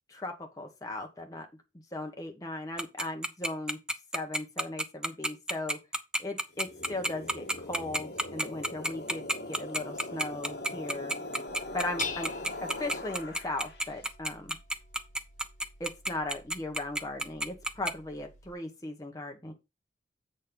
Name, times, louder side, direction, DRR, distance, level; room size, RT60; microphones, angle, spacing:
voice 1, 0.1-1.5 1.9-3.8 4.1-5.8 6.2-11.1 11.7-12.3 12.6-14.6 15.8-19.5, left 2 dB, 20° left, 1.4 m, -37 dB
Tick-tock, 2.8-17.9, right 1 dB, 5° right, 0.5 m, -30 dB
sound 1, 6.5-13.9, left 1 dB, 60° left, 1.9 m, -41 dB
Dishes pots and pans, 11.5-18.5, left 5 dB, 45° left, 1.3 m, -46 dB
7.6 x 4.2 x 5.3 m
head